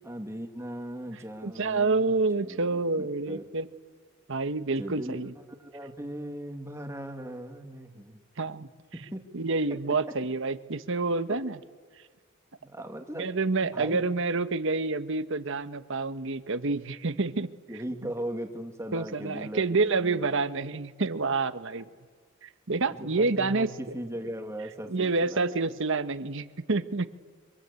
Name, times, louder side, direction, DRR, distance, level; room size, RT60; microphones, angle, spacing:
voice 1, 0.0-2.2 2.4-3.5 4.8-5.3 5.6-8.2 8.9-9.2 11.3-11.4 12.6-13.3 13.7-14.1 17.7-20.4 23.0-25.8, right 1 dB, 15° right, 5 dB, 2.2 m, -38 dB
voice 2, 1.4-3.7 4.3-5.3 8.4-8.7 9.3-11.6 13.2-17.5 18.9-21.9 22.4-23.7 24.9-27.1, right 3 dB, 60° right, 12 dB, 1.2 m, -28 dB
26.0 x 25.5 x 8.3 m, 1.5 s
head